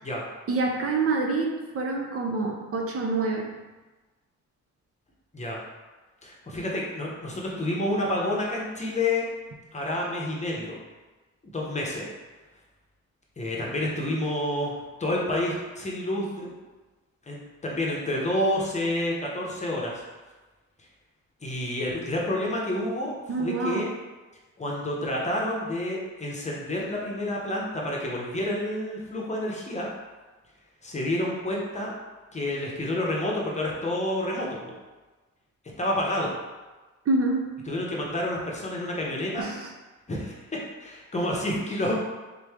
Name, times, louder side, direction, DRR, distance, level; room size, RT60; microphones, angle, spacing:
voice 1, 0.5-3.5 23.3-23.8 37.1-37.6 39.4-39.7, right 3 dB, 50° right, 1 dB, 0.5 m, -27 dB
voice 2, 6.2-9.2 9.7-10.8 11.4-12.1 13.4-16.5 17.3-20.0 21.4-23.9 24.6-29.9 30.8-31.9 32.3-34.7 35.8-36.3 37.7-39.5 40.1-40.4 40.8-42.0, left 1 dB, 25° left, -3 dB, 0.8 m, -29 dB
3.7 x 3.1 x 3.5 m, 1.2 s
wide cardioid pair, 135°, 30 cm